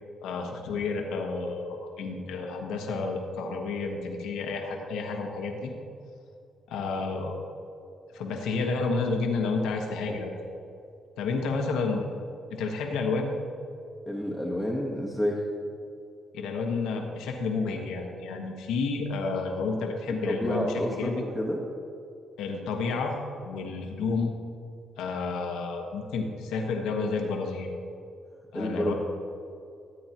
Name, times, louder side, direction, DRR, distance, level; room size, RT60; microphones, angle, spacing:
voice 1, 0.2-5.7 6.7-7.3 8.1-10.3 11.2-12.1 12.5-13.3 16.3-20.7 21.0-21.2 22.4-23.1 23.4-24.3 25.0-27.7 28.5-28.9, left 4 dB, 90° left, 1 dB, 1.2 m, -30 dB
voice 2, 14.1-15.4 20.1-21.6 28.5-28.9, equal, ahead, -3 dB, 1.1 m, -29 dB
14.0 x 8.7 x 2.9 m, 2.6 s
cardioid pair, 90°, 0 cm